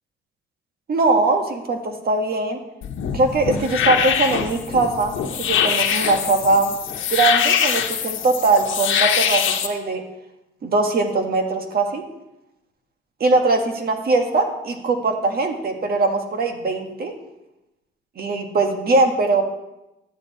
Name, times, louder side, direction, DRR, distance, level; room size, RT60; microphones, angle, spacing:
voice 1, 0.9-2.6 3.1-6.8 7.1-10.0 10.6-12.0 13.2-17.1 18.2-19.4, right 3 dB, 50° right, 5 dB, 1.6 m, -21 dB
sound 1, 2.8-9.7, left 8 dB, 80° left, 1.2 m, -23 dB
11.5 x 9.2 x 4.2 m, 0.93 s
cardioid pair, 90°, 20 cm